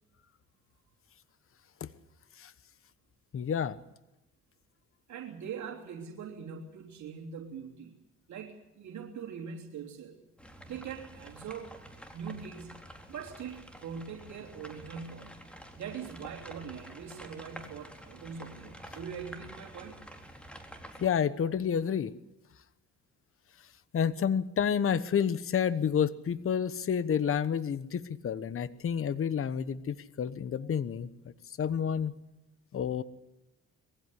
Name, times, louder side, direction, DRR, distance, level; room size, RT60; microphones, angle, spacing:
voice 1, 3.3-3.8 21.0-22.1 23.9-32.1 32.7-33.0, left 7 dB, 45° left, 16 dB, 1.1 m, -30 dB
voice 2, 5.1-8.0 8.3-10.2 10.7-11.8 12.1-12.8 13.1-15.4 15.8-20.0, right 7 dB, 70° right, 0 dB, 3.3 m, -42 dB
sound 1, 10.4-21.1, equal, 5° left, 3.9 m, -49 dB
22.0 x 16.0 x 9.9 m, 0.93 s
cardioid pair, 90°, 30 cm